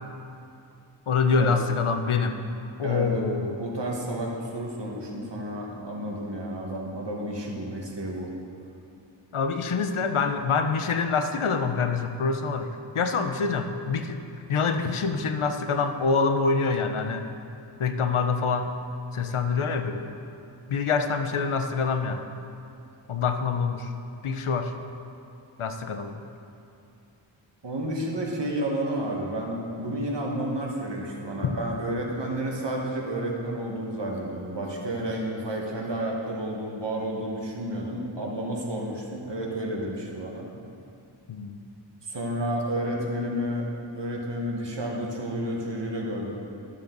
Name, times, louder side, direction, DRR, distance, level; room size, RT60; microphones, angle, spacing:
voice 1, 1.1-2.4 2.8-3.6 9.3-12.7 12.9-14.2 14.5-17.3 17.8-18.8 19.1-20.0 20.7-22.3 23.1-23.9 24.2-24.7 25.6-26.2 31.4-31.5 41.3-41.6, left 5 dB, 85° left, 7 dB, 0.7 m, -26 dB
voice 2, 2.8-3.2 3.6-8.3 27.6-40.5 42.1-43.7 43.9-46.3, right 1 dB, 60° right, -1 dB, 1.6 m, -31 dB
13.0 x 7.0 x 3.9 m, 2.6 s
wide cardioid pair, 70°, 48 cm